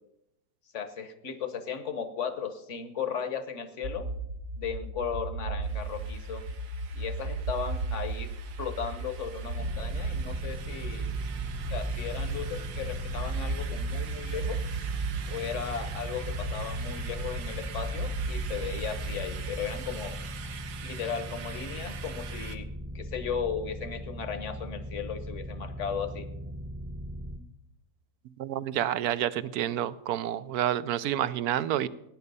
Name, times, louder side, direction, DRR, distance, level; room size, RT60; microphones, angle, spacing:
voice 1, 0.7-4.1 4.6-6.4 6.9-8.3 8.6-11.1 11.7-14.6 15.3-20.2 20.8-22.7 22.9-26.3, left 7 dB, 50° left, 11 dB, 1.4 m, -36 dB
sound 1, 3.8-19.8, right 3 dB, 55° right, 1.3 m, -35 dB
sound 2, 5.6-22.6, right 8 dB, 90° right, 1.6 m, -45 dB
sound 3, 9.6-27.4, equal, 10° right, 0.7 m, -39 dB
voice 2, 28.4-31.9, right 11 dB, 75° right, 16 dB, 1.1 m, -29 dB
16.5 x 9.8 x 5.5 m, 0.84 s
omnidirectional pair, 1.7 m